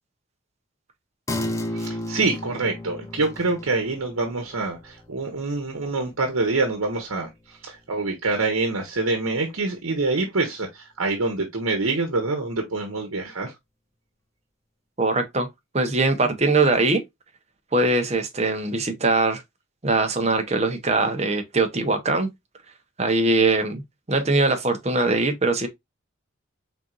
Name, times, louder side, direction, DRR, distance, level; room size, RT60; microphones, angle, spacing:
sound 1, 1.3-8.3 8.7-8.8, left 1 dB, 15° left, 0.4 m, -35 dB
voice 1, 1.7-13.5, right 3 dB, 90° right, 1.0 m, -26 dB
voice 2, 15.0-15.5 15.7-17.0 17.7-19.4 19.8-22.3 23.0-23.8 24.1-25.7, right 3 dB, 30° right, 0.9 m, -21 dB
4.4 x 3.8 x 2.4 m
head